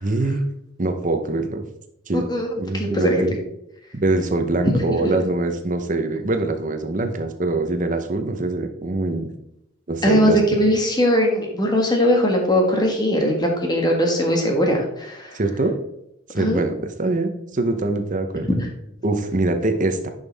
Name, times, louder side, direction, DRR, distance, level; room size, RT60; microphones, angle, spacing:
voice 1, 0.0-0.4 0.8-1.6 2.1-2.3 2.6-3.3 3.9-9.3 9.9-10.4 15.3-15.8 16.3-18.5 19.0-20.1, right 2 dB, 40° right, 7 dB, 0.8 m, -23 dB
voice 2, 2.1-3.2 4.7-5.1 10.0-15.4 16.3-16.6 18.6-18.7, equal, 20° left, 1 dB, 1.6 m, -20 dB
10.5 x 5.6 x 3.4 m, 0.81 s
head